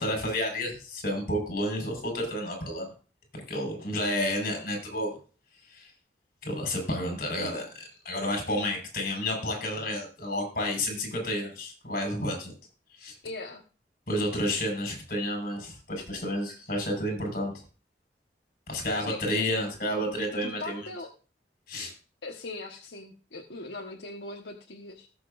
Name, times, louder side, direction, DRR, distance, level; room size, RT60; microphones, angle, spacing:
voice 1, 0.0-2.9 3.5-5.2 5.7-5.9 6.4-12.5 13.0-13.1 14.1-17.5 18.7-20.8 21.7-21.9, left 1 dB, 55° left, 2 dB, 5.4 m, -30 dB
voice 2, 13.2-13.6 19.1-19.6 20.4-21.1 22.2-25.1, left 2 dB, 90° left, 1 dB, 1.3 m, -40 dB
19.0 x 6.9 x 2.6 m, 0.36 s
head